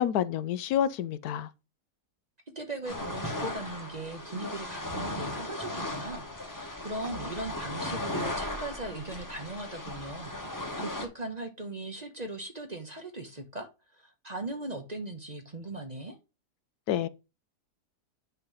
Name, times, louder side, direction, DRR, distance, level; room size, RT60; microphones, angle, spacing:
voice 1, 0.0-1.5 16.9-17.1, left 10 dB, 75° left, 1.1 m, -28 dB
voice 2, 2.5-16.2, right 2 dB, 30° right, 0.9 m, -39 dB
sound 1, 2.8-11.1, left 1 dB, 15° left, 1.0 m, -36 dB
9.1 x 3.3 x 5.5 m
omnidirectional pair, 1.7 m